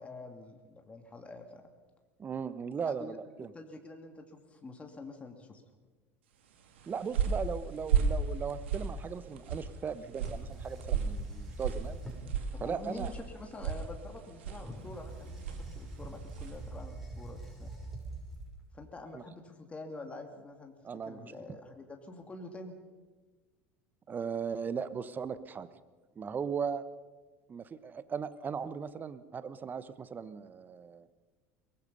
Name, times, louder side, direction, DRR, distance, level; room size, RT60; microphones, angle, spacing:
voice 1, 0.0-1.7 2.9-3.2 3.5-5.6 12.5-17.7 18.7-20.7 21.1-22.7, left 2 dB, 20° left, 4 dB, 2.8 m, -46 dB
voice 2, 2.2-3.5 6.9-12.0 12.6-13.1 19.1-19.2 20.8-21.3 24.1-25.7 26.2-26.8 27.5-31.1, right 6 dB, 30° right, 14 dB, 1.2 m, -37 dB
sound 1, 6.6-16.7, right 6 dB, 70° right, 2.2 m, -35 dB
sound 2, 10.2-12.4 14.6-18.8, right 2 dB, 5° right, 5.7 m, -44 dB
23.0 x 20.5 x 5.5 m, 1.3 s
figure-of-eight pair, 70°, 6 cm